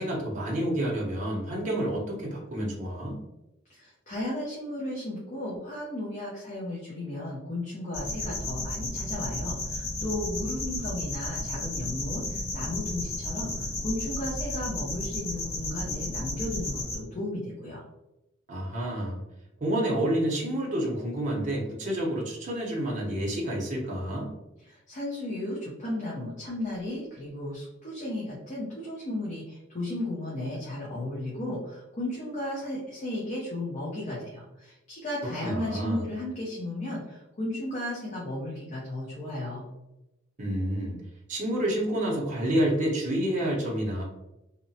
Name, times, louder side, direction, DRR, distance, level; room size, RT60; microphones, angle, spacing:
voice 1, 0.0-3.1 18.5-19.2 19.6-24.3 35.4-36.0 40.4-41.0 41.3-44.0, right 1 dB, 40° right, -3 dB, 0.6 m, -29 dB
voice 2, 3.7-17.9 24.6-39.7, left 1 dB, 35° left, -6 dB, 0.6 m, -34 dB
sound 1, 7.9-17.0, left 2 dB, 75° left, 1.0 m, -33 dB
2.8 x 2.0 x 2.6 m, 0.92 s
head